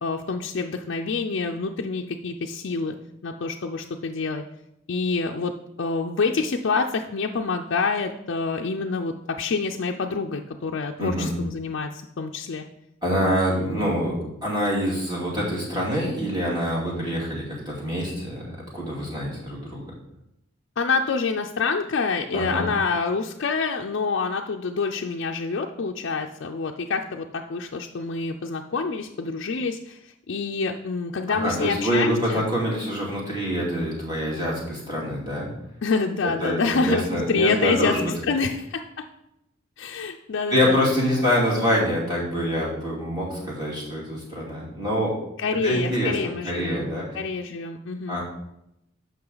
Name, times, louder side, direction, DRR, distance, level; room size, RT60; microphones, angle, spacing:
voice 1, 0.0-3.0 3.2-4.4 4.9-5.5 5.8-12.6 13.5-13.9 20.8-32.4 35.8-37.9 38.3-39.0 39.8-40.9 45.4-46.9 47.1-48.2, left 4 dB, 60° left, 2 dB, 0.5 m, -27 dB
voice 2, 11.0-11.3 13.0-14.1 14.4-19.8 22.3-22.7 31.3-35.5 36.2-38.1 40.5-45.1 45.6-47.1 48.1-48.2, equal, 20° right, -5 dB, 2.5 m, -25 dB
8.7 x 5.9 x 3.9 m, 0.82 s
head